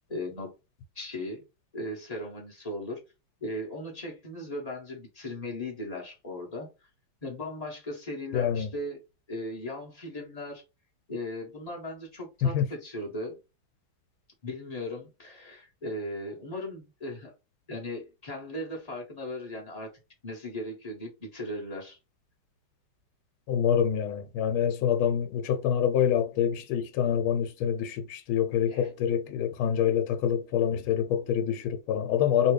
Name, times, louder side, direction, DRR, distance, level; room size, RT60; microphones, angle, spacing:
voice 1, 0.1-0.5 0.9-1.4 1.7-3.0 3.4-6.7 7.2-9.0 9.3-10.6 11.1-13.4 14.4-17.3 17.7-19.9 20.2-22.0 28.7-28.9, left 1 dB, 35° left, 0.6 m, -37 dB
voice 2, 8.3-8.7 12.5-12.6 23.5-32.5, left 9 dB, 80° left, 1.5 m, -26 dB
3.0 x 2.8 x 3.1 m
omnidirectional pair, 2.3 m